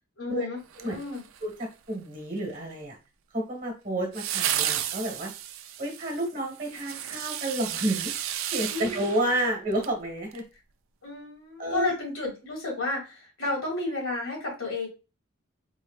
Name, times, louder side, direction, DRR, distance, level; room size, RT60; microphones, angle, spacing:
voice 1, 0.2-1.2 8.7-9.0 11.0-14.9, left 3 dB, 85° left, -2 dB, 2.1 m, -32 dB
sound 1, 0.7-1.6 4.1-10.0 10.3-10.4, right 11 dB, 80° right, 0.4 m, -33 dB
voice 2, 1.4-3.0 3.3-5.3 5.8-8.1 8.5-10.4 11.6-11.9, right 1 dB, 40° right, 0 dB, 1.3 m, -30 dB
4.1 x 3.2 x 2.4 m, 0.29 s
head